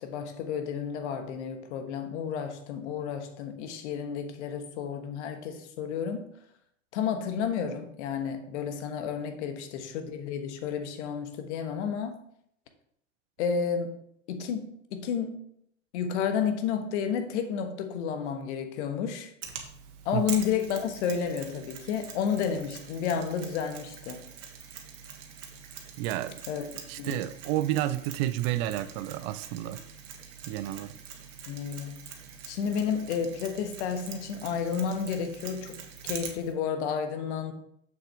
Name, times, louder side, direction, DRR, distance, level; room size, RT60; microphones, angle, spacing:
voice 1, 0.0-6.3 6.9-12.2 13.4-14.0 14.3-15.4 15.9-19.3 20.0-24.3 26.5-26.7 27.0-27.2 31.5-32.0 32.5-37.5, left 7 dB, 65° left, 1.3 m, -31 dB
Mechanisms, 19.4-36.5, right 7 dB, 70° right, 1.6 m, -44 dB
voice 2, 26.0-26.4 26.9-29.8 30.5-31.0, right 14 dB, 55° right, 0.6 m, -30 dB
7.2 x 6.5 x 3.5 m
hypercardioid pair, 90°, 38 cm